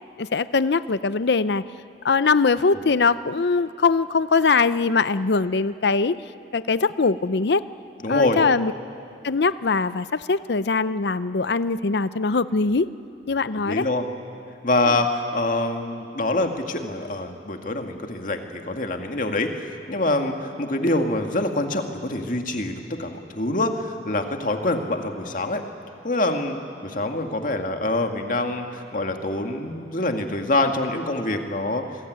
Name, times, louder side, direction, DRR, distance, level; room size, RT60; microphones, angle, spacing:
voice 1, 0.2-1.6 2.0-6.2 6.5-7.6 8.1-8.7 9.2-12.9 13.3-13.9, left 4 dB, 70° left, 14 dB, 0.6 m, -21 dB
voice 2, 8.0-8.4 13.5-14.0 14.6-25.6 26.0-31.8, left 2 dB, 50° left, 4 dB, 2.1 m, -25 dB
28.5 x 21.0 x 9.5 m, 2.5 s
head